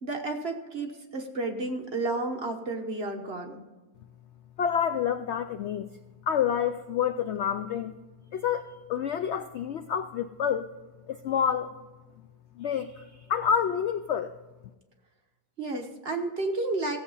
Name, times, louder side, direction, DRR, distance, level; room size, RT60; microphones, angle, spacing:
voice 1, 0.0-3.6 15.6-17.0, right 2 dB, 40° right, 4 dB, 1.2 m, -31 dB
voice 2, 4.6-5.9 6.3-7.9 8.3-10.7 11.1-11.7 12.6-14.3, left 8 dB, 85° left, 9 dB, 0.6 m, -28 dB
16.0 x 7.7 x 5.5 m, 1.1 s
omnidirectional pair, 1.7 m